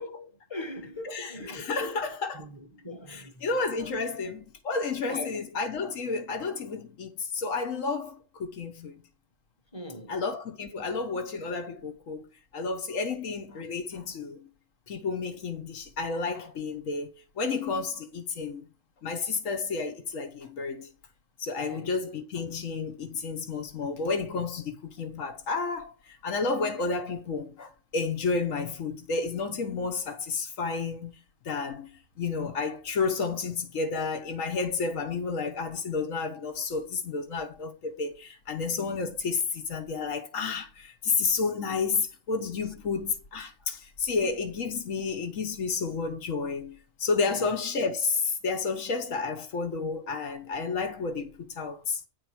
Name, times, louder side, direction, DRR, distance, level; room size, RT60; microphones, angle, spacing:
voice 1, 0.0-2.0 2.3-3.5 3.8-4.2 5.1-5.3 9.7-10.2 21.6-21.9 47.3-47.5, left 1 dB, 25° left, 1.1 m, -41 dB
voice 2, 1.0-2.5 3.1-8.9 10.1-12.3 12.5-14.4 14.9-17.1 17.4-18.7 19.0-20.9 21.4-31.1 31.4-31.9 32.2-52.0, left 4 dB, 90° left, 1.6 m, -31 dB
10.0 x 4.3 x 6.0 m
omnidirectional pair, 1.3 m